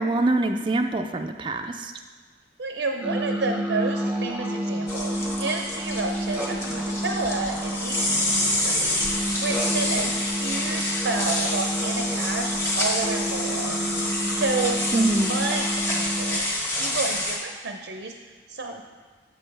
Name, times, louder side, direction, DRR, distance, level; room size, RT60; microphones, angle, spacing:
voice 1, 0.0-1.9 14.9-15.3, right 2 dB, 30° right, 4 dB, 0.4 m, -24 dB
voice 2, 2.6-13.8 14.3-18.8, right 3 dB, 85° right, 3 dB, 0.6 m, -31 dB
sound 1, 3.0-16.4, right 1 dB, 10° right, 0.8 m, -30 dB
sound 2, 4.9-17.4, left 1 dB, 15° left, 1.4 m, -28 dB
8.3 x 7.5 x 3.3 m, 1.5 s
head